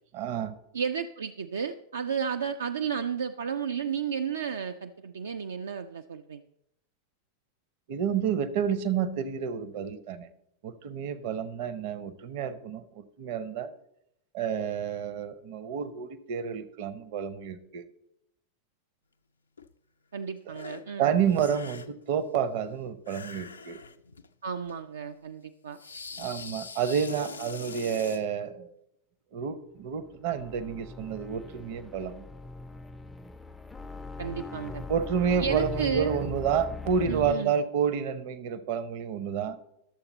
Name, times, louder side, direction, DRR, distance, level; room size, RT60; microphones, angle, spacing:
voice 1, 0.1-0.5 7.9-10.3 10.6-13.7 14.3-17.8 20.5-20.6 21.0-23.8 26.2-28.8 29.3-32.2 34.9-39.6, right 7 dB, 50° right, 13 dB, 0.7 m, -30 dB
voice 2, 0.7-6.4 20.1-21.2 24.4-25.8 34.2-34.8 35.4-36.2 37.0-37.6, right 7 dB, 70° right, 7 dB, 0.3 m, -32 dB
sound 1, 19.6-19.7 20.5-20.8 21.2-22.0 23.0-24.3 24.6-24.8 25.7-28.3, left 5 dB, 75° left, 0.4 m, -43 dB
sound 2, 29.9-37.4, left 2 dB, 5° left, 0.4 m, -40 dB
11.5 x 7.0 x 4.0 m, 0.79 s
figure-of-eight pair, 90°, 0 cm